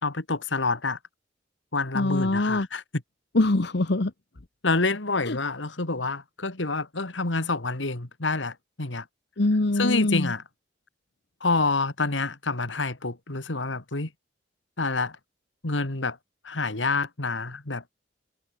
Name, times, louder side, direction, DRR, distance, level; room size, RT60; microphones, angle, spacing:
voice 1, 0.0-1.0 1.7-3.0 4.6-9.0 9.8-10.4 11.4-14.1 14.8-15.2 15.6-16.2 16.4-17.8, left 3 dB, 85° left, 2.4 m, -27 dB
voice 2, 1.9-2.7 3.3-4.1 5.3-5.4 9.4-10.3, left 2 dB, 65° left, 1.2 m, -23 dB
head